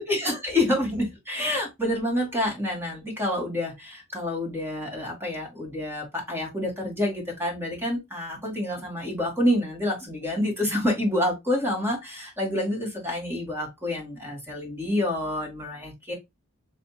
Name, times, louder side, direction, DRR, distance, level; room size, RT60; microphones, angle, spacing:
voice 1, 0.0-16.1, left 1 dB, 10° right, -1 dB, 2.0 m, -28 dB
6.7 x 2.7 x 2.7 m, 0.20 s
head